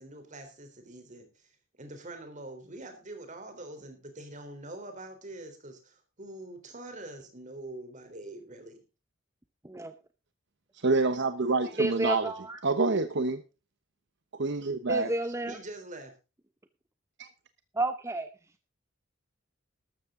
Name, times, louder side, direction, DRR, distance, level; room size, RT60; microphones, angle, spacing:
voice 1, 0.0-1.5 1.8-8.8 15.4-16.1, right 2 dB, 40° right, 6 dB, 3.7 m, -44 dB
voice 2, 10.7-12.3 12.6-13.4 14.3-15.1 17.2-17.3, right 3 dB, 65° right, 10 dB, 1.0 m, -27 dB
voice 3, 11.8-12.6 14.9-15.6 17.7-18.3, right 2 dB, 15° right, 9 dB, 0.8 m, -31 dB
13.5 x 13.0 x 3.8 m, 0.30 s
head